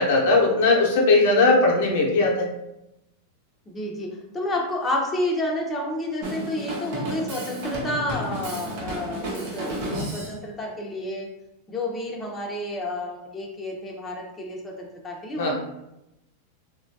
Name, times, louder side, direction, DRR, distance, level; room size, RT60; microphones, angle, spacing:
voice 1, 0.0-2.5 15.4-15.5, left 3 dB, 65° left, 0 dB, 0.6 m, -19 dB
voice 2, 3.7-11.3 11.7-15.5, left 1 dB, 15° left, -1 dB, 0.6 m, -30 dB
Drum kit, 6.2-10.4, right 1 dB, 60° right, 0.8 m, -32 dB
3.1 x 2.2 x 2.6 m, 0.88 s
hypercardioid pair, 100°, 0 cm